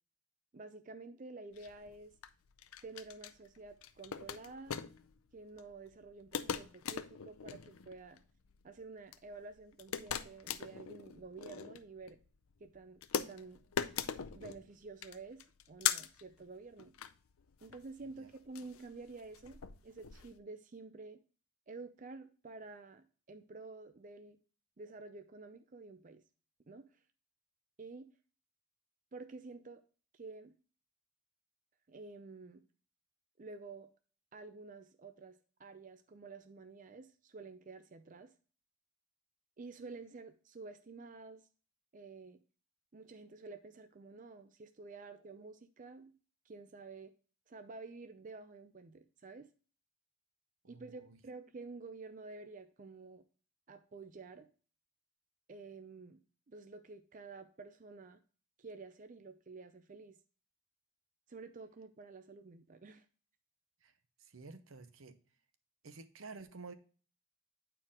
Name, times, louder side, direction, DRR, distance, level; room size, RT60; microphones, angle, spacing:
voice 1, 0.5-2.1 2.8-4.8 5.3-8.2 8.6-12.2 12.6-13.6 14.3-16.9 17.6-21.2 21.7-24.4 24.8-26.2 26.7-26.8 27.8-28.1 29.1-29.8 30.1-30.5 31.9-32.6 33.4-33.9 34.3-38.3 39.6-41.4 41.9-42.4 42.9-46.1 46.5-47.1 47.5-49.5 50.7-53.2 53.7-54.5 55.5-56.2 56.5-58.2 58.6-60.2 61.3-63.1, right 3 dB, 40° right, 8 dB, 0.5 m, -50 dB
sound 1, 1.5-20.4, left 8 dB, 90° left, 0.6 m, -42 dB
voice 2, 50.6-51.2 63.8-63.9 64.2-65.2 65.8-66.7, right 4 dB, 75° right, 10 dB, 0.8 m, -51 dB
9.1 x 4.6 x 3.6 m, 0.38 s
head